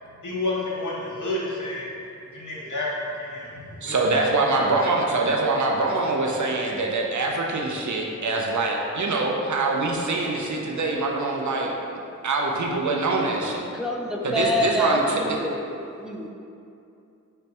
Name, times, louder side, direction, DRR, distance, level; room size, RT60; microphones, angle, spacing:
voice 1, 0.2-1.9 2.3-4.3, left 2 dB, 75° left, -4 dB, 0.8 m, -30 dB
voice 2, 3.8-11.7 12.2-13.6 14.2-15.4, right 3 dB, 70° right, -1 dB, 0.5 m, -24 dB
voice 3, 13.7-15.6 16.0-16.3, equal, ahead, -1 dB, 0.3 m, -26 dB
5.3 x 2.2 x 2.9 m, 2.6 s
wide cardioid pair, 55°, 31 cm